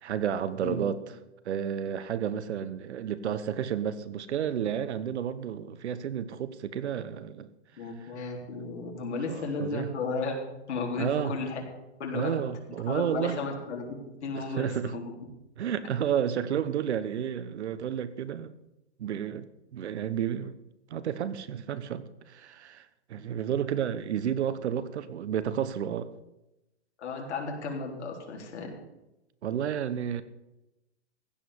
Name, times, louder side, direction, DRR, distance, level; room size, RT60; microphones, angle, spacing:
voice 1, 0.0-1.0 1.4-7.5 9.3-9.9 11.0-11.3 12.1-13.4 14.4-14.9 15.6-18.5 19.0-20.6 20.9-26.1 29.4-30.2, right 9 dB, 75° right, 1.2 m, -31 dB
voice 2, 7.8-11.6 12.0-12.4 12.9-15.2 27.0-28.7, left 3 dB, 75° left, 3.9 m, -34 dB
15.5 x 5.4 x 9.6 m
hypercardioid pair, 155°, 34 cm